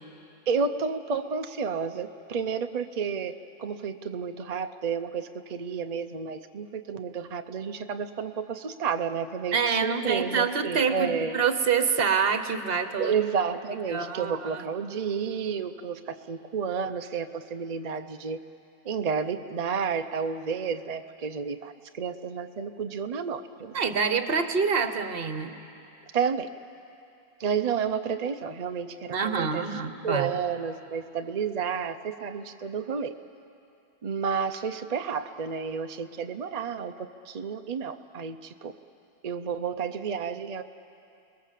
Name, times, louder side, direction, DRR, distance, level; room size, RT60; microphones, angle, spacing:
voice 1, 0.5-3.3 3.6-11.4 13.0-18.4 18.8-23.8 26.1-26.5 27.4-29.7 30.0-33.1 34.0-38.7 39.2-40.6, right 6 dB, 65° right, 7 dB, 0.4 m, -31 dB
voice 2, 9.5-13.1 13.9-14.6 23.7-25.5 29.1-30.3, right 5 dB, 40° right, 9 dB, 1.1 m, -26 dB
29.5 x 20.0 x 7.5 m, 2.6 s
omnidirectional pair, 1.7 m